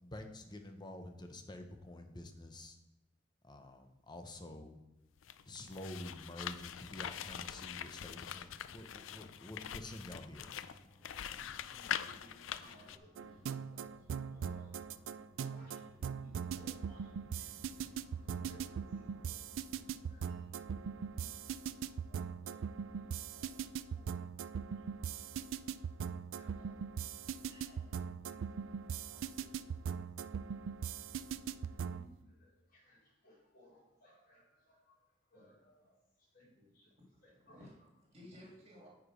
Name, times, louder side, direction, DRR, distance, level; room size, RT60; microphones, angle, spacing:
voice 1, 0.0-2.8 3.4-4.8 5.5-10.6, left 1 dB, 20° left, 5 dB, 0.8 m, -48 dB
sound 1, 5.2-13.0, left 9 dB, 80° left, 0.4 m, -43 dB
sound 2, 6.6-21.1, equal, 5° left, 2.3 m, -64 dB
voice 2, 10.9-13.9 14.3-14.9 15.4-17.9 18.2-19.4 19.8-20.9 21.1-21.4 21.8-23.5 23.9-24.0 24.9-25.0 25.3-25.4 26.4-27.9 28.3-30.6 31.6-35.0 35.3-35.9 36.3-36.9 37.2-37.6 38.8-38.9, equal, 50° left, -5 dB, 3.5 m, -64 dB
sound 3, 13.2-32.1, right 7 dB, 80° right, 0.3 m, -41 dB
voice 3, 37.0-38.9, left 1 dB, 35° right, -2 dB, 2.1 m, -57 dB
9.3 x 4.9 x 5.1 m, 0.96 s
head